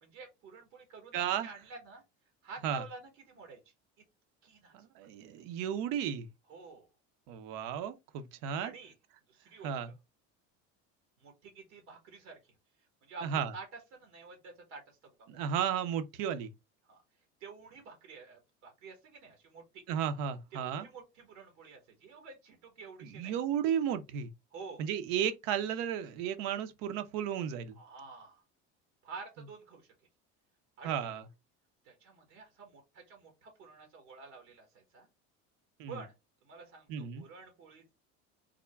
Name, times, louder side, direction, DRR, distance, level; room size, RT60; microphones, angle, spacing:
voice 1, 0.0-2.0 2.4-3.6 4.4-4.9 6.5-6.9 8.6-8.9 9.3-9.9 11.2-12.6 13.0-15.4 16.9-17.0 17.4-19.8 20.5-23.3 24.5-24.8 27.8-28.4 29.0-29.9 30.8-31.2 31.8-35.1 35.9-36.1 36.4-37.9, right 4 dB, 85° right, 1.4 m, -50 dB
voice 2, 1.1-1.5 2.6-2.8 4.7-6.3 7.3-8.7 9.6-9.9 13.2-13.5 15.3-16.5 19.9-20.9 23.0-24.3 24.8-27.8 30.8-31.2 35.8-36.0 36.9-37.2, right 9 dB, 65° right, 0.7 m, -34 dB
3.6 x 2.1 x 3.4 m
supercardioid pair, 105°, 36 cm